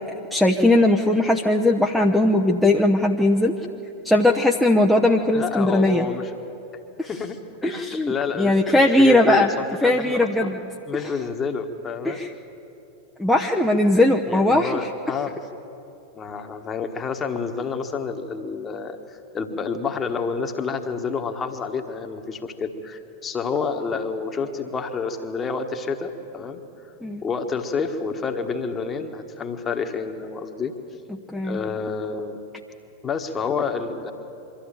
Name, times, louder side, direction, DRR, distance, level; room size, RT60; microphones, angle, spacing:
voice 1, 0.3-3.5 4.0-6.1 7.0-7.1 7.6-9.5 9.8-10.6 12.0-12.3 13.2-14.9 27.0-27.2 31.3-31.6, left 1 dB, ahead, -1 dB, 0.8 m, -19 dB
voice 2, 5.3-6.3 7.1-10.5 10.9-12.2 14.3-15.3 16.1-26.6 27.2-30.7 31.4-32.4 33.0-34.1, left 5 dB, 20° left, 6 dB, 1.5 m, -29 dB
23.5 x 13.5 x 9.0 m, 2.8 s
figure-of-eight pair, 90°, 0 cm